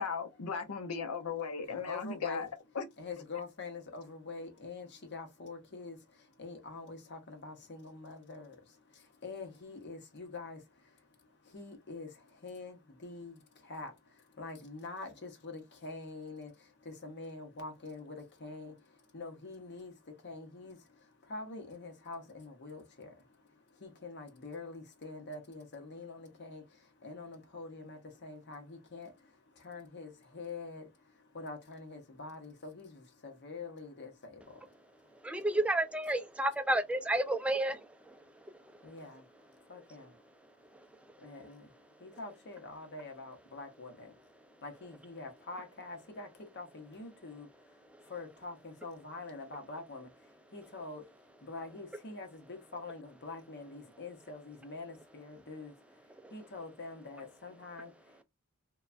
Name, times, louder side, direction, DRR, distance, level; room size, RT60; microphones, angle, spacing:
voice 1, 0.0-2.5 2.8-2.9, left 5 dB, 80° left, 0.6 m, -37 dB
voice 2, 1.6-2.5 3.0-35.3 38.2-58.2, left 3 dB, 50° left, 0.8 m, -46 dB
voice 3, 35.0-39.0 39.5-39.7 40.0-40.1 40.4-41.3 41.9-42.1 44.4-44.6 47.9-48.1 56.1-56.3, right 1 dB, 5° right, 0.3 m, -34 dB
3.2 x 2.2 x 2.4 m
head